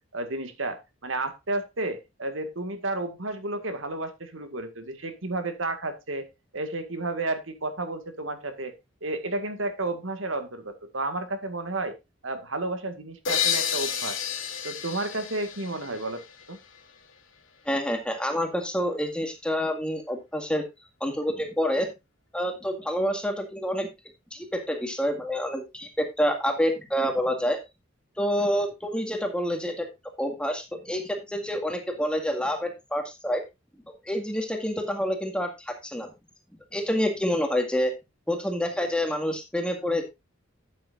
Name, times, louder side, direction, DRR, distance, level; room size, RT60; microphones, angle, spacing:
voice 1, 0.1-6.3 6.5-8.7 9.0-11.9 12.2-14.2 14.6-16.2 16.5-16.6, right 2 dB, 75° right, 8 dB, 1.9 m, -32 dB
sound 1, 13.2-16.8, left 9 dB, 75° left, 2.4 m, -30 dB
voice 2, 17.7-20.6 21.0-21.9 22.3-23.9 24.3-27.6 28.2-29.9 30.2-33.4 34.1-36.1 36.7-37.9 38.3-40.0, equal, 5° left, 4 dB, 1.9 m, -27 dB
12.5 x 8.7 x 2.5 m, 0.22 s
head